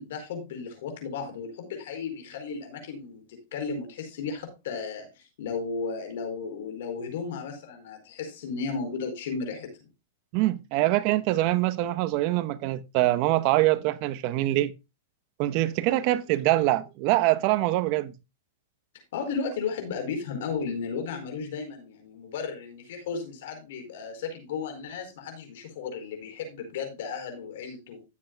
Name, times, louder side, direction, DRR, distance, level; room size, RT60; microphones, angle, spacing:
voice 1, 0.0-3.2 3.5-9.7 19.1-28.0, left 5 dB, 65° left, 4.6 m, -34 dB
voice 2, 10.3-14.7 15.4-18.1, right 16 dB, 50° right, 0.8 m, -24 dB
16.0 x 7.7 x 2.2 m
hypercardioid pair, 120°, 0 cm